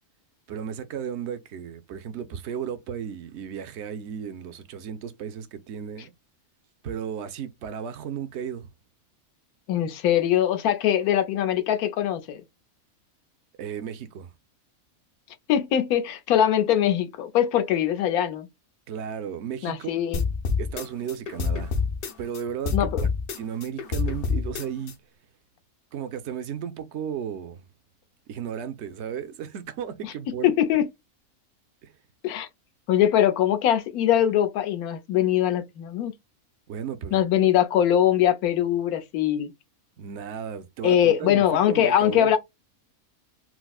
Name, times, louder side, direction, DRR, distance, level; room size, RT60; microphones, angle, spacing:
voice 1, 0.5-6.1 6.8-8.7 13.6-14.3 18.9-19.9 20.6-21.8 22.2-23.1 23.4-24.9 25.9-27.6 28.3-30.5 31.8-31.9 36.7-37.2 40.0-42.4, right 8 dB, 65° right, 0.7 m, -34 dB
voice 2, 9.7-12.4 15.5-18.5 19.6-20.2 22.7-23.1 30.0-30.1 30.4-30.9 32.2-32.5 32.9-36.1 37.1-39.5 40.8-42.4, left 10 dB, 80° left, 1.1 m, -22 dB
sound 1, 20.1-22.4 22.7-24.9, left 5 dB, 55° left, 0.6 m, -27 dB
4.5 x 2.0 x 2.3 m
omnidirectional pair, 1.5 m